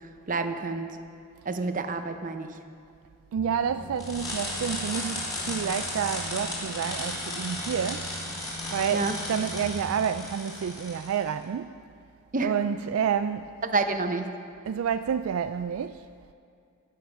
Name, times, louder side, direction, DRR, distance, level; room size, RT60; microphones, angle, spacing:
voice 1, 0.3-0.9 1.5-2.5 8.9-9.1 12.3-12.5 13.6-14.3, right 3 dB, 40° right, 0.8 m, -28 dB
sound 1, 3.3-10.1, right 1 dB, 85° left, 1.7 m, -42 dB
voice 2, 3.3-8.1 8.7-11.7 12.4-13.6 14.7-16.1, right 7 dB, 70° right, 0.3 m, -29 dB
sound 2, 4.0-11.2, left 1 dB, 20° left, 3.0 m, -35 dB
14.5 x 9.3 x 6.1 m
head